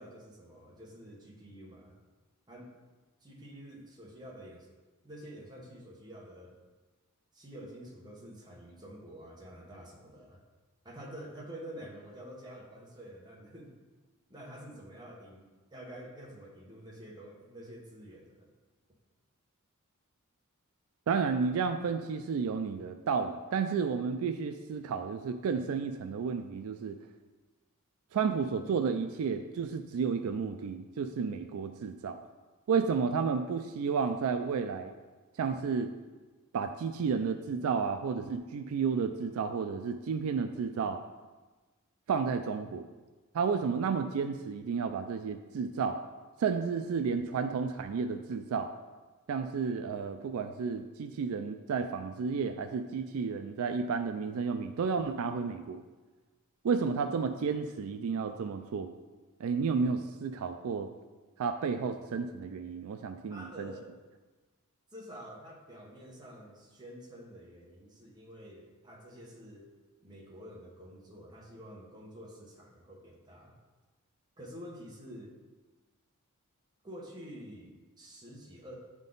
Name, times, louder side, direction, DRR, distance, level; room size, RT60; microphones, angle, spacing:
voice 1, 0.0-1.9 2.5-2.7 3.2-4.7 5.0-6.6 7.3-10.4 10.8-13.8 14.3-18.5 63.3-64.0 64.9-69.7 70.0-73.6 74.4-75.3 76.8-78.7, equal, 20° right, -3 dB, 1.1 m, -48 dB
voice 2, 21.1-27.0 28.1-32.2 32.7-34.9 35.4-35.9 36.5-41.0 42.1-42.8 43.3-46.0 46.4-48.7 49.3-55.8 56.6-58.9 59.4-60.9 61.4-63.7, right 5 dB, 65° right, 7 dB, 0.3 m, -32 dB
8.9 x 3.7 x 3.9 m, 1.3 s
head